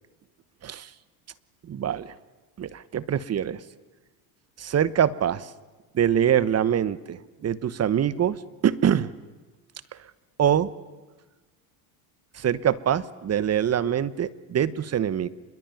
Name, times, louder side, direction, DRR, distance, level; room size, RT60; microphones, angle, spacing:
voice 1, 1.7-2.1 2.6-3.6 4.6-5.5 5.9-8.4 8.6-9.1 10.4-10.7 12.3-15.3, right 9 dB, 30° right, 18 dB, 1.1 m, -24 dB
27.0 x 22.0 x 9.3 m, 1.2 s
supercardioid pair, 100°, 46 cm